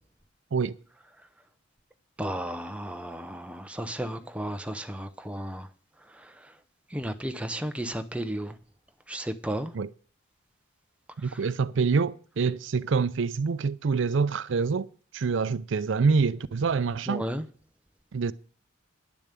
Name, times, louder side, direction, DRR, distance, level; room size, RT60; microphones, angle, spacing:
voice 1, 2.2-5.7 6.1-6.5 6.9-8.6 9.1-9.7 11.2-11.4 17.1-17.4, right 1 dB, 5° right, 0.6 m, -34 dB
voice 2, 11.2-14.9 15.1-17.2 18.1-18.3, right 5 dB, 65° right, 0.4 m, -26 dB
10.5 x 7.0 x 8.2 m
head